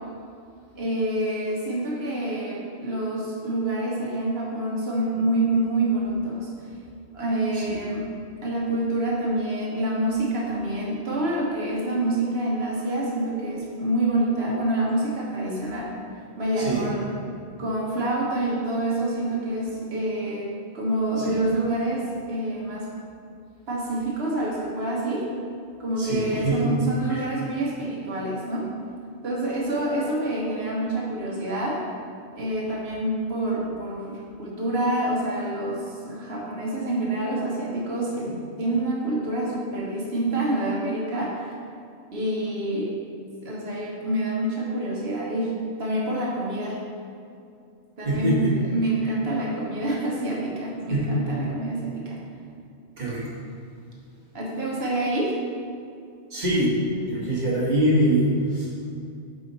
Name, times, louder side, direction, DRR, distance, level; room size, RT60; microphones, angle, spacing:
voice 1, 0.8-6.7 7.1-8.1 8.4-15.9 16.4-17.1 17.6-22.9 23.7-25.3 25.8-28.7 29.2-31.8 32.3-41.5 42.1-42.9 43.4-46.8 48.0-52.2 54.3-55.4, right 1 dB, 55° right, -4 dB, 1.3 m, -27 dB
voice 2, 26.0-26.7 27.1-27.2 48.0-48.3 50.9-51.2 53.0-53.2 56.3-58.9, right 1 dB, 35° right, -6 dB, 1.4 m, -24 dB
4.9 x 4.9 x 4.0 m, 2.4 s
omnidirectional pair, 1.3 m